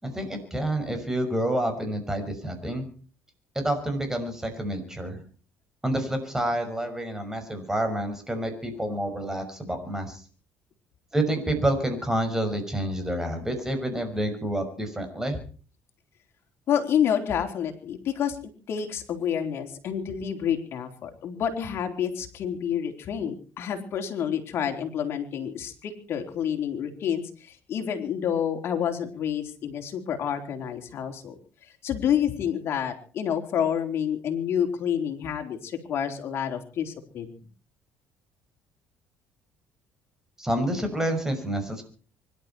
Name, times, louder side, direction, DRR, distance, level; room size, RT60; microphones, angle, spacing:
voice 1, 0.0-2.9 3.5-5.2 5.8-10.2 11.1-15.4 40.4-41.8, right 1 dB, 10° right, 7 dB, 6.0 m, -28 dB
voice 2, 16.7-18.4 18.7-31.4 31.8-37.4, left 8 dB, 55° left, 4 dB, 4.0 m, -28 dB
25.0 x 12.0 x 4.6 m, 0.39 s
cardioid pair, 105°, 5 cm